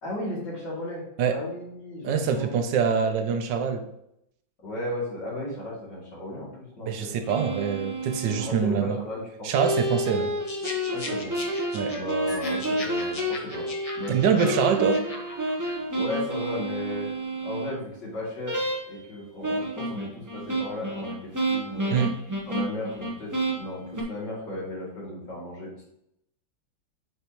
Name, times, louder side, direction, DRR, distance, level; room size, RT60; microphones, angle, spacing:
voice 1, 0.0-1.0 1.3-2.7 3.0-3.2 4.6-6.5 6.8-7.1 8.3-9.5 10.9-11.3 11.9-13.7 13.9-14.5 15.9-17.1 17.4-18.6 18.9-22.1 22.5-25.8, left 1 dB, 65° left, -6 dB, 3.3 m, -35 dB
voice 2, 2.0-3.8 6.9-9.0 9.4-10.3 11.7-11.9 14.1-15.0 21.9-22.2, right 7 dB, 75° right, 7 dB, 1.4 m, -24 dB
sound 1, 7.2-8.5 9.5-17.7 18.5-19.1 19.4-24.0, right 1 dB, 25° right, 0.4 m, -30 dB
sound 2, 10.5-15.7, left 1 dB, 30° left, 0.6 m, -39 dB
9.0 x 4.4 x 3.0 m, 0.77 s
omnidirectional pair, 2.0 m